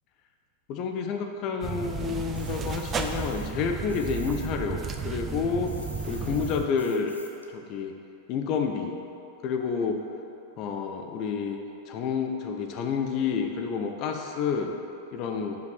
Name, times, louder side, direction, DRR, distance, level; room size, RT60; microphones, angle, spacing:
voice 1, 0.7-5.7 6.1-7.1 7.5-7.9 8.3-9.0 9.4-10.0 10.6-11.6 11.9-14.7 15.1-15.6, left 6 dB, 40° left, 4 dB, 0.7 m, -29 dB
sound 1, 1.6-6.7, right 5 dB, 25° right, 0.4 m, -33 dB
sound 2, 2.3-4.5 4.8-7.5, left 1 dB, 85° left, 0.6 m, -46 dB
5.4 x 5.2 x 5.8 m, 2.7 s
figure-of-eight pair, 90°, 0 cm